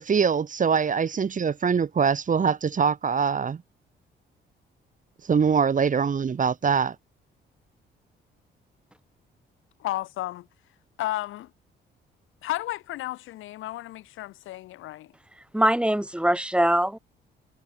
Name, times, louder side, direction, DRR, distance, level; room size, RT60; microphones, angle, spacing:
voice 1, 0.0-3.6 5.3-6.9, right 6 dB, 40° right, 2.3 m, -23 dB
voice 2, 9.8-10.5 11.0-11.5 12.4-15.1, left 15 dB, 90° left, 5.9 m, -33 dB
voice 3, 15.5-17.0, right 1 dB, 5° right, 3.3 m, -22 dB
cardioid pair, 90°, 20 cm